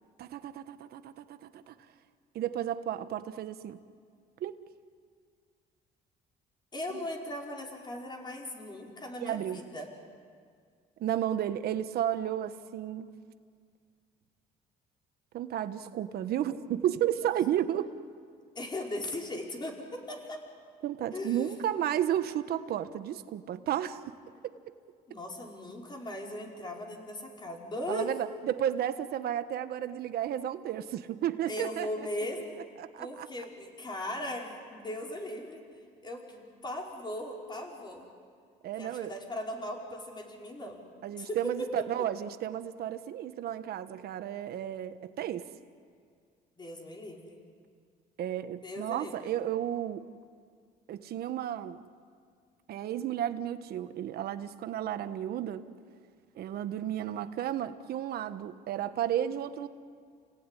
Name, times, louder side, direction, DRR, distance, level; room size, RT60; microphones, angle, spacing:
voice 1, 0.2-1.7 2.3-3.8 4.4-4.6 9.2-9.6 11.0-13.1 15.3-17.9 20.8-24.0 24.4-24.5 27.9-31.9 32.8-33.3 38.6-39.1 41.0-45.5 48.2-50.1 50.9-51.8 52.7-55.7 56.3-59.7, right 11 dB, 65° right, 10 dB, 1.3 m, -33 dB
voice 2, 6.7-9.9 17.2-17.3 18.5-20.4 21.1-21.5 25.1-28.1 31.5-32.6 33.0-35.6 36.0-38.1 38.8-40.8 41.2-42.1 46.6-47.4 48.6-49.3, left 1 dB, 25° left, 0 dB, 5.0 m, -38 dB
30.0 x 18.0 x 10.0 m, 2.1 s
cardioid pair, 110°, 17 cm